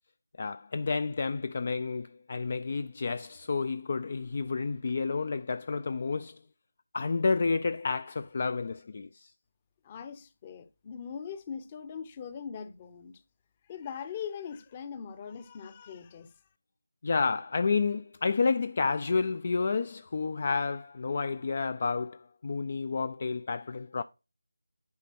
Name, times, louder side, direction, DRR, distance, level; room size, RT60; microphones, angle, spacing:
voice 1, 0.4-6.4 6.9-9.3 17.0-24.0, left 4 dB, 40° left, 0.3 m, -30 dB
voice 2, 9.8-13.2 13.7-16.3, left 7 dB, 20° left, 0.7 m, -41 dB
10.5 x 4.1 x 4.5 m
figure-of-eight pair, 165°, 0 cm